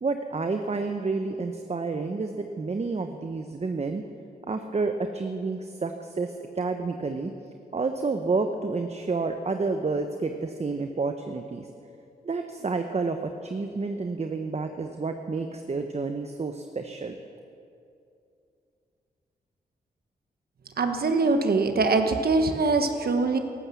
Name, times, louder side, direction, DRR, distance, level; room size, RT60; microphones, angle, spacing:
voice 1, 0.0-4.0 4.5-7.3 7.7-11.7 12.2-17.2, right 4 dB, 40° right, 6 dB, 0.9 m, -29 dB
voice 2, 20.8-23.4, right 3 dB, 60° right, 6 dB, 1.2 m, -23 dB
14.5 x 12.5 x 7.0 m, 2.6 s
cardioid pair, 60°, 17 cm